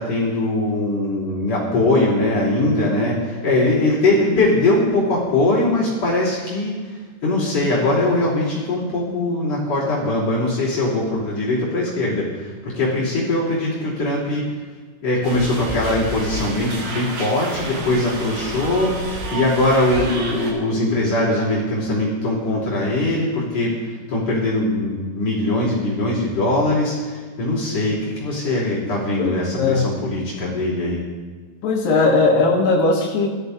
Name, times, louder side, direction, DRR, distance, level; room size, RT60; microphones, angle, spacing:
voice 1, 0.0-14.4 15.0-31.0, left 2 dB, 40° left, -6 dB, 3.7 m, -21 dB
sound 1, 15.2-20.5, right 2 dB, 55° right, 2.9 m, -30 dB
voice 2, 29.2-29.9 31.6-33.3, left 3 dB, 70° left, -2 dB, 1.9 m, -18 dB
16.5 x 12.5 x 2.8 m, 1.5 s
omnidirectional pair, 5.4 m